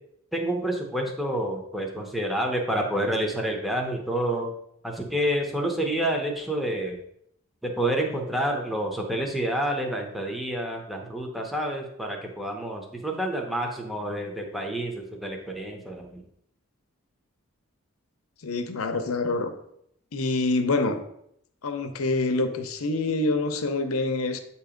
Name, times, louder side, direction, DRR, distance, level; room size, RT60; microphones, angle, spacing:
voice 1, 0.3-4.5 4.8-7.0 7.6-16.2, right 1 dB, ahead, 1 dB, 0.7 m, -28 dB
voice 2, 18.4-19.5 20.1-21.0 21.6-24.4, left 2 dB, 80° left, 8 dB, 0.7 m, -26 dB
7.8 x 2.9 x 5.0 m, 0.74 s
head